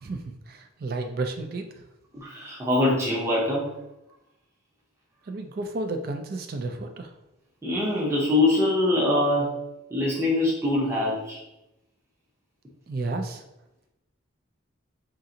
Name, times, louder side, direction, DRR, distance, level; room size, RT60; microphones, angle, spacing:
voice 1, 0.0-1.8 5.3-7.1 12.9-13.4, right 2 dB, 50° right, 6 dB, 0.4 m, -32 dB
voice 2, 2.1-3.7 7.6-9.5 9.9-11.4, left 2 dB, 15° right, -5 dB, 0.7 m, -23 dB
3.8 x 2.4 x 2.8 m, 0.92 s
head